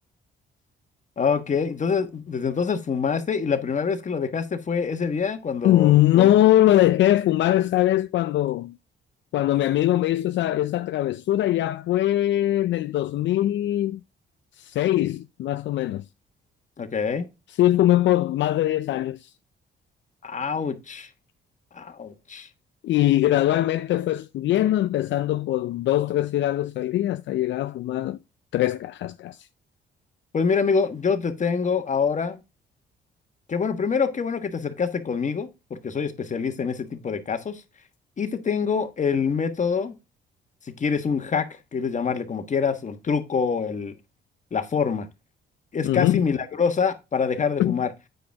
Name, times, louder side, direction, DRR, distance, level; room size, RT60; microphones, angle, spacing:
voice 1, 1.2-6.3 16.8-17.3 20.2-21.1 21.7-22.5 30.3-32.4 33.5-37.6 38.2-40.0 40.8-43.9 44.5-45.1 45.7-47.9, left 6 dB, 40° left, 1.3 m, -25 dB
voice 2, 5.6-8.8 9.3-14.0 14.6-16.0 17.5-19.3 22.8-28.2 28.5-29.5 45.8-46.2 47.6-47.7, left 13 dB, 70° left, 0.4 m, -21 dB
9.0 x 5.1 x 3.5 m
cardioid pair, 90°, 20 cm